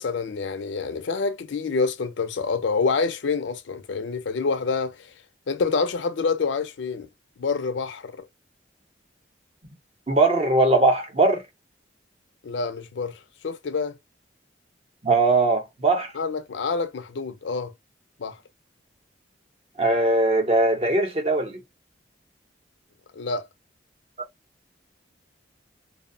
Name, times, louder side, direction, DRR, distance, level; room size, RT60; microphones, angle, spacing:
voice 1, 0.0-5.0 5.5-7.1 7.4-8.2 12.4-13.2 13.4-14.0 16.1-17.7 18.2-18.4 23.2-23.4, left 4 dB, 75° left, 0.5 m, -27 dB
voice 2, 10.1-11.4 15.0-16.1 19.8-21.6, right 2 dB, 30° right, 0.7 m, -20 dB
2.6 x 2.1 x 2.5 m
head